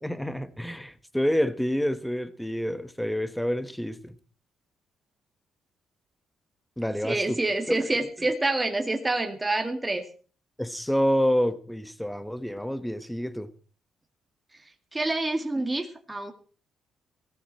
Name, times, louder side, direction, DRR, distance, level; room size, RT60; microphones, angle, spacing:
voice 1, 0.0-4.1 6.8-7.4 7.7-7.8 10.6-13.5, equal, 5° left, 1.3 m, -28 dB
voice 2, 7.0-10.0 14.9-16.3, right 2 dB, 15° right, 2.0 m, -27 dB
17.0 x 14.5 x 4.4 m
cardioid pair, 90°, 0 cm